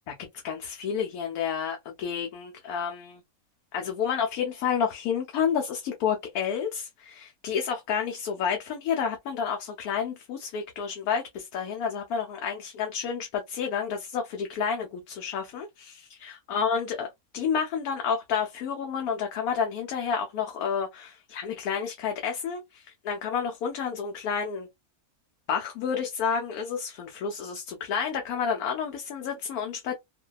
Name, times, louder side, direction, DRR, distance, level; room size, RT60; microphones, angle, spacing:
voice 1, 0.4-3.2 3.7-17.1 17.3-24.7 25.5-29.9, left 7 dB, 80° left, 1.1 m, -30 dB
2.6 x 2.2 x 2.2 m
omnidirectional pair, 1.6 m